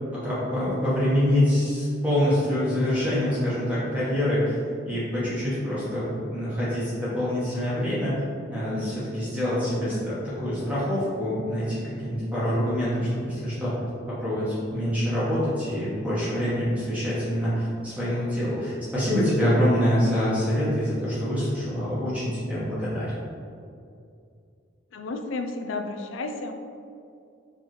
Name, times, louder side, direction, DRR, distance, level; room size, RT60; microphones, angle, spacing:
voice 1, 0.1-4.6 4.8-8.2 8.5-13.7 14.1-23.1, equal, 5° right, -11 dB, 1.1 m, -25 dB
voice 2, 24.9-26.5, left 3 dB, 75° left, 6 dB, 0.4 m, -32 dB
4.7 x 3.5 x 3.0 m, 2.4 s
head